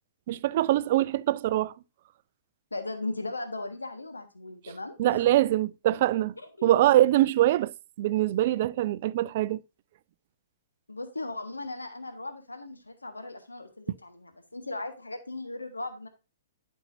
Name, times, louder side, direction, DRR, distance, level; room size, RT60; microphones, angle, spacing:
voice 1, 0.3-1.7 5.0-6.3 6.6-7.7 8.0-9.6, right 14 dB, 45° right, 0.3 m, -23 dB
voice 2, 2.7-5.3 6.6-6.7 10.9-16.1, left 2 dB, 80° left, 1.3 m, -37 dB
11.5 x 5.4 x 2.6 m
figure-of-eight pair, 115°, 0 cm